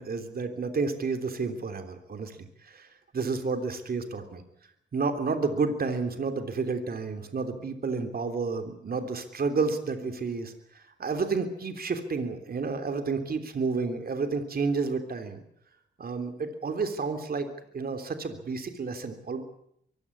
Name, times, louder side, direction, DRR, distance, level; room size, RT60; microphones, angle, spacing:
voice 1, 0.0-2.9 3.1-4.4 4.9-15.4 16.0-17.5 17.7-19.4, right 4 dB, 55° right, 7 dB, 3.3 m, -30 dB
23.5 x 16.0 x 9.9 m, 0.72 s
cardioid pair, 95°, 19 cm